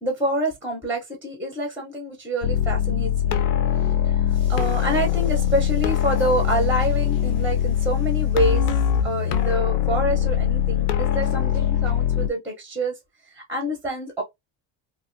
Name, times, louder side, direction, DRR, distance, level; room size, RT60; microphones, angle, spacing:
voice 1, 0.0-3.4 4.0-8.6 9.0-12.9 13.3-14.2, right 1 dB, 5° right, 0.6 m, -27 dB
sound 1, 2.4-12.3, left 10 dB, 85° left, 0.6 m, -22 dB
3.0 x 2.5 x 2.5 m
cardioid pair, 160°, 50 cm